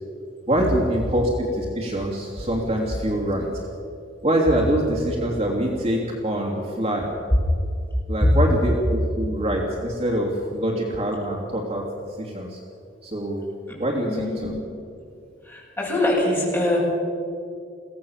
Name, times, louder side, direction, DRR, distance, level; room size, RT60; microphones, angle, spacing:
voice 1, 0.5-3.5 4.2-7.1 8.1-11.9 12.2-12.6 13.0-13.4 13.8-14.5, right 1 dB, 35° right, -1 dB, 3.0 m, -24 dB
voice 2, 14.1-14.5 15.4-16.8, left 1 dB, 15° left, -5 dB, 7.9 m, -23 dB
23.0 x 17.5 x 7.4 m, 2.4 s
head